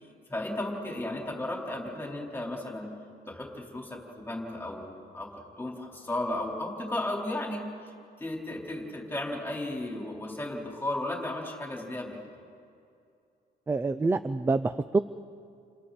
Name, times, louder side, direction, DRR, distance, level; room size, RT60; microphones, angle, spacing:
voice 1, 0.3-2.9 3.3-4.0 4.3-5.3 5.6-7.7 8.2-12.2, left 1 dB, 10° left, -2 dB, 4.4 m, -34 dB
voice 2, 13.7-15.0, right 3 dB, 10° right, 12 dB, 0.5 m, -26 dB
29.5 x 28.5 x 4.3 m, 2.4 s
cardioid pair, 145°, 19 cm